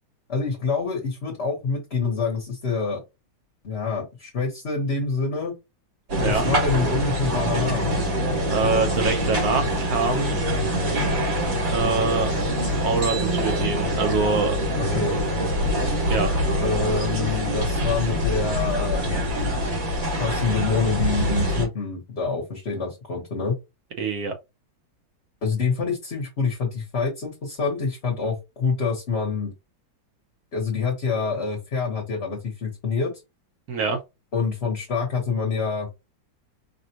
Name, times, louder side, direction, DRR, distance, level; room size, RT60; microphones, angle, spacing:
voice 1, 0.3-3.0 3.6-5.6 6.2-7.9 14.9-15.2 16.6-19.6 20.2-23.6 25.4-29.5 30.5-33.1 34.3-35.9, left 4 dB, 40° left, 1.2 m, -26 dB
sound 1, 6.1-21.7, equal, 80° right, 3.2 m, -24 dB
voice 2, 8.5-10.4 11.7-12.3 12.8-14.5 16.1-16.3 24.0-24.3 33.7-34.0, right 4 dB, 55° right, 1.3 m, -24 dB
5.0 x 2.4 x 2.8 m
omnidirectional pair, 2.1 m